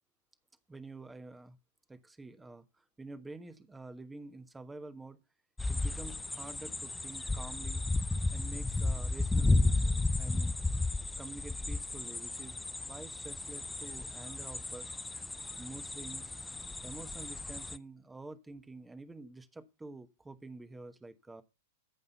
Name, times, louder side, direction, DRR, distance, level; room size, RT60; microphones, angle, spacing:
voice 1, 0.7-1.6 1.9-5.2 5.7-7.8 8.3-10.5 11.2-14.9 15.6-16.3 16.8-21.4, right 2 dB, 10° right, 1.2 m, -48 dB
sound 1, 5.6-17.8, left 2 dB, 10° left, 0.6 m, -33 dB
14.5 x 5.5 x 5.5 m
figure-of-eight pair, 100°, 0 cm